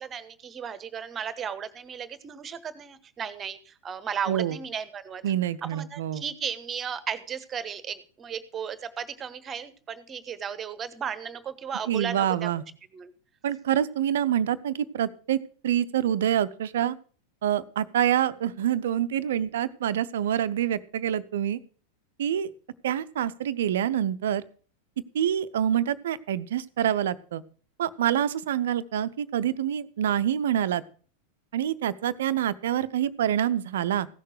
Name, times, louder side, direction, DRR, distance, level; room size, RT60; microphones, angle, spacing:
voice 1, 0.0-5.2 5.7-12.5 12.9-13.1, right 7 dB, 25° right, 14 dB, 1.1 m, -35 dB
voice 2, 4.3-4.6 5.2-6.2 11.9-12.6 13.4-15.4 15.6-17.0 17.4-21.6 22.2-22.5 22.8-24.4 25.1-27.4 27.8-30.8 31.5-34.1, right 10 dB, 60° right, 14 dB, 0.6 m, -26 dB
15.5 x 6.6 x 6.4 m, 0.41 s
figure-of-eight pair, 90°, 0 cm